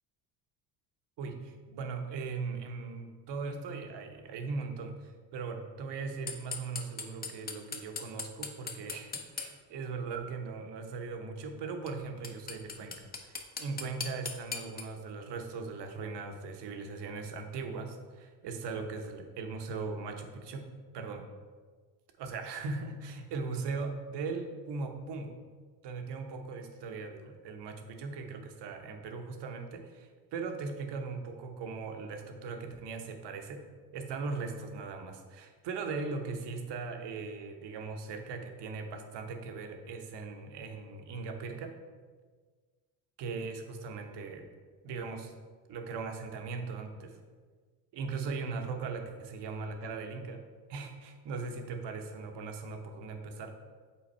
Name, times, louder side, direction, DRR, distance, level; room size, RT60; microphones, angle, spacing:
voice 1, 1.2-13.0 13.2-20.7 20.9-21.2 22.2-25.3 25.8-30.0 30.3-33.6 33.9-41.7 43.2-44.5 44.8-45.3 45.7-47.2 47.9-50.4 50.7-53.5, right 4 dB, 55° right, 5 dB, 1.0 m, -39 dB
sound 1, 6.3-9.5 11.9-12.0 12.2-14.8, left 5 dB, 20° left, 0.7 m, -38 dB
5.7 x 3.9 x 4.3 m, 1.5 s
supercardioid pair, 75°, 48 cm